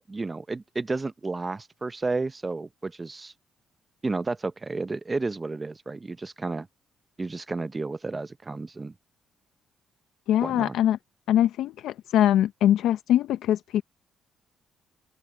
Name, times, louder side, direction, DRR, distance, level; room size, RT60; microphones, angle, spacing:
voice 1, 0.0-3.3 4.0-6.7 7.2-8.9 10.4-10.8, right 3 dB, 25° right, 0.6 m, -32 dB
voice 2, 10.3-11.0 11.3-13.8, left 11 dB, 80° left, 0.6 m, -22 dB
open air
cardioid pair, 90°, 0 cm